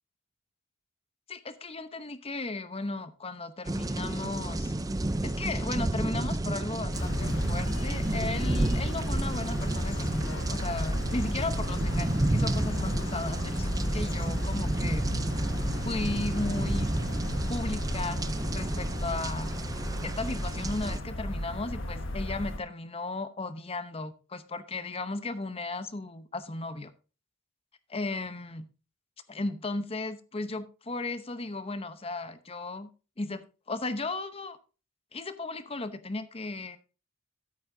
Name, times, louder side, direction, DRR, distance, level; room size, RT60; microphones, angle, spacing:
voice 1, 1.3-4.7 5.2-15.1 15.8-16.9 17.5-18.2 18.5-19.5 20.0-26.9 27.9-28.7 29.3-32.9 33.2-34.6 35.1-36.8, left 2 dB, 25° left, 0.8 m, -35 dB
sound 1, 3.6-21.0, right 1 dB, 15° right, 0.5 m, -31 dB
sound 2, 6.9-22.6, left 1 dB, 60° left, 1.3 m, -34 dB
13.5 x 8.6 x 2.7 m
head